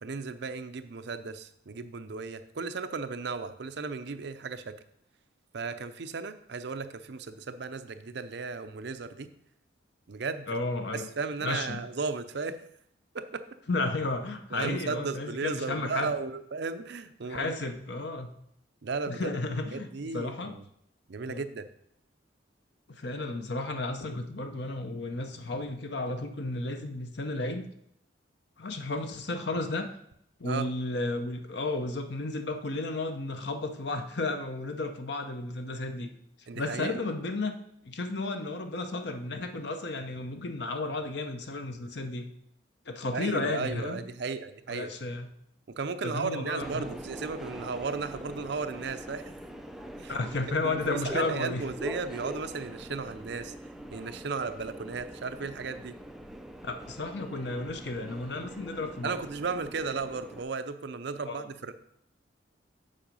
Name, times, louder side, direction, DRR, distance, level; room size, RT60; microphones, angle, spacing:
voice 1, 0.0-4.8 5.5-9.3 10.1-10.5 10.9-12.6 13.1-13.4 14.5-17.6 18.8-19.3 19.7-20.6 21.1-21.7 30.4-30.7 36.5-37.0 43.1-44.9 45.7-49.3 50.0-50.2 50.6-53.5 53.9-55.9 59.0-61.7, right 4 dB, 60° right, 10 dB, 0.5 m, -35 dB
voice 2, 10.5-11.1 11.4-11.8 13.7-16.1 17.2-18.3 19.1-20.5 21.2-21.4 22.9-27.6 28.6-29.9 30.4-36.1 36.5-37.5 37.8-42.3 42.9-44.0 44.7-45.3 46.0-46.9 50.1-51.6 56.6-59.2 61.3-61.5, left 2 dB, 55° left, 6 dB, 0.8 m, -33 dB
Subway metro underground, 46.6-60.4, equal, ahead, 0.4 m, -43 dB
7.5 x 4.7 x 5.3 m, 0.73 s
head